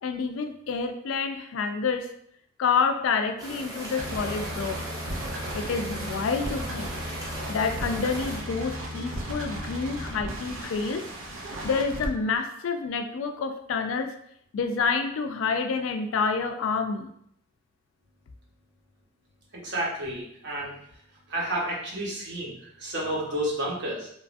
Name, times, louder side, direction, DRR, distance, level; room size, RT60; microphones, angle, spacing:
voice 1, 0.0-2.1 2.6-4.8 5.5-7.0 7.5-11.0 11.6-14.1 14.5-17.1, left 5 dB, 80° left, 7 dB, 0.3 m, -28 dB
sound 1, 3.4-8.4, right 1 dB, 20° right, 0.6 m, -38 dB
sound 2, 3.8-12.1, equal, 90° right, 0.6 m, -35 dB
voice 2, 19.5-20.7 21.3-24.1, right 1 dB, 60° right, -4 dB, 0.9 m, -31 dB
3.0 x 2.3 x 2.5 m, 0.69 s
head